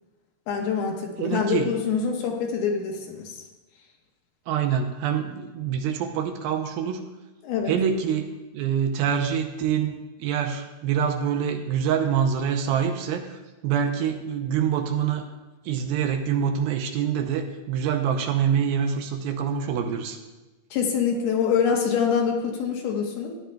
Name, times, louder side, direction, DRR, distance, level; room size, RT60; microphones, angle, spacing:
voice 1, 0.5-3.4 7.4-7.7 20.7-23.3, left 6 dB, 80° left, 1 dB, 3.1 m, -25 dB
voice 2, 1.2-1.7 4.5-7.0 7.7-15.2 15.7-20.2, right 8 dB, 80° right, 5 dB, 2.4 m, -25 dB
14.0 x 10.0 x 2.3 m, 1.1 s
omnidirectional pair, 4.4 m